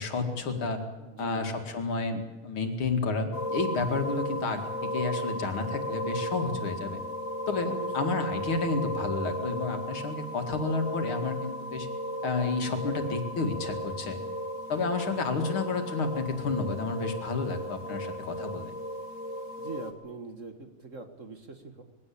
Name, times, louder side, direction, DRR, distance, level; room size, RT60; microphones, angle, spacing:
voice 1, 0.0-0.8 1.2-7.0 7.5-11.9 12.2-14.2 14.7-18.7, left 4 dB, 80° left, 5 dB, 3.0 m, -31 dB
voice 2, 1.0-1.6 7.7-8.1 19.6-21.8, right 3 dB, 40° right, 6 dB, 1.8 m, -42 dB
sound 1, 3.3-19.9, equal, 40° left, 1.9 m, -35 dB
21.5 x 16.5 x 8.6 m, 1.2 s
omnidirectional pair, 2.3 m